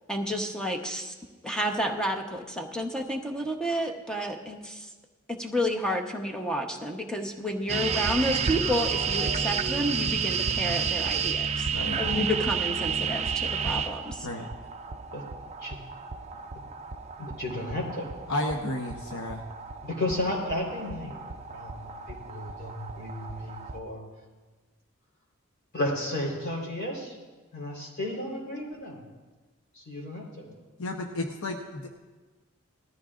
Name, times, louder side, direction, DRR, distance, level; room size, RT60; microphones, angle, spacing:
voice 1, 0.1-1.1 1.4-4.9 5.4-11.7 12.0-14.3, equal, 5° left, 2 dB, 1.0 m, -30 dB
sound 1, 7.7-23.8, right 6 dB, 30° right, 0.5 m, -31 dB
voice 2, 17.2-18.1 19.8-24.0 25.7-27.2 27.5-29.0 29.7-30.5, left 1 dB, 50° left, -2 dB, 3.9 m, -33 dB
voice 3, 18.3-19.4 30.8-31.9, left 1 dB, 85° left, 2 dB, 1.0 m, -32 dB
19.0 x 14.0 x 2.5 m, 1.3 s
head